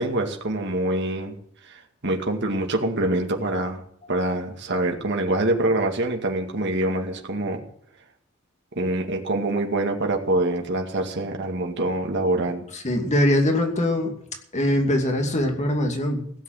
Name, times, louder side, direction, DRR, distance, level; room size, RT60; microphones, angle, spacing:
voice 1, 0.0-1.3 1.6-3.8 4.1-7.6 8.8-12.6, right 2 dB, 55° right, 2 dB, 2.2 m, -25 dB
voice 2, 12.7-14.1 14.5-16.3, left 1 dB, 35° left, 3 dB, 2.6 m, -22 dB
16.5 x 8.1 x 7.8 m, 0.68 s
head